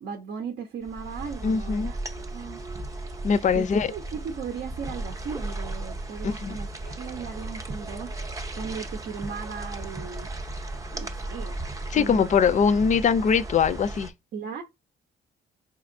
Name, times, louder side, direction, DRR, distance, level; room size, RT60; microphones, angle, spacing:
voice 1, 0.0-2.0 2.3-2.6 3.5-8.2 8.6-10.3 10.9-11.6 11.9-12.4 14.3-14.6, right 6 dB, 65° right, 0.7 m, -37 dB
sound 1, 0.8-14.1, right 2 dB, 15° right, 0.5 m, -36 dB
voice 2, 1.4-1.9 3.2-3.9 6.2-6.6 11.9-14.1, left 6 dB, 40° left, 0.4 m, -22 dB
4.2 x 2.8 x 2.5 m
cardioid pair, 90°, 20 cm